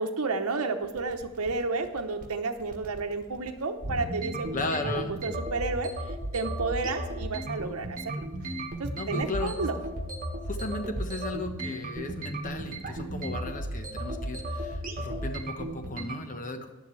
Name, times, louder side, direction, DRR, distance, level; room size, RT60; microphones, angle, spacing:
voice 1, 0.0-9.8, right 3 dB, 90° right, 5 dB, 0.9 m, -32 dB
sound 1, 0.8-16.2, right 1 dB, 40° right, 1.4 m, -35 dB
voice 2, 4.5-5.1 8.9-9.7 10.5-16.7, left 2 dB, 40° left, 6 dB, 1.2 m, -35 dB
15.0 x 10.5 x 3.3 m, 1.1 s
head